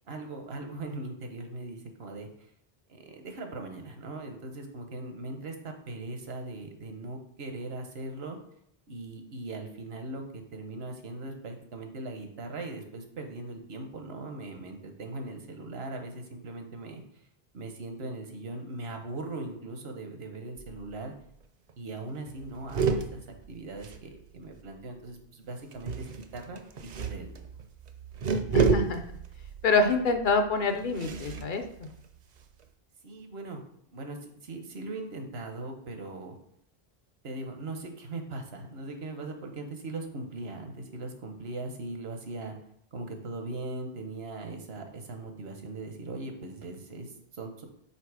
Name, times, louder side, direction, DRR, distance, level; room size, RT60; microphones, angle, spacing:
voice 1, 0.1-2.3 2.9-8.4 8.9-17.0 17.5-21.1 21.8-23.2 23.5-26.6 27.0-27.3 33.0-33.6 33.9-36.4 37.2-42.5 42.9-47.7, right 2 dB, 80° right, 5 dB, 1.2 m, -39 dB
sound 1, 20.6-21.0 21.3-21.4 21.7-21.9 22.3-24.6 25.7-32.6, right 5 dB, 50° right, 0.6 m, -32 dB
voice 2, 28.5-29.0 29.6-31.9, left 3 dB, 60° left, 6 dB, 0.7 m, -26 dB
5.7 x 3.8 x 4.7 m, 0.70 s
omnidirectional pair, 1.0 m